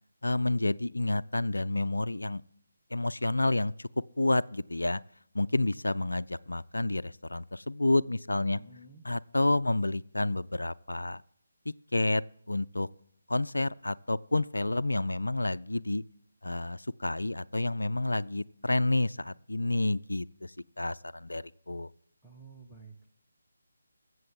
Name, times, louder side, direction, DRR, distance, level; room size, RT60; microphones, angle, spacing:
voice 1, 0.2-2.4 2.9-3.9 4.2-5.0 5.3-8.6 9.1-11.2 11.7-12.2 12.5-12.9 13.3-16.0 16.4-21.9, left 2 dB, 75° left, 0.4 m, -29 dB
voice 2, 8.5-9.0 22.2-23.1, right 3 dB, 5° left, 1.2 m, -51 dB
21.5 x 7.8 x 3.8 m
figure-of-eight pair, 150°, 0 cm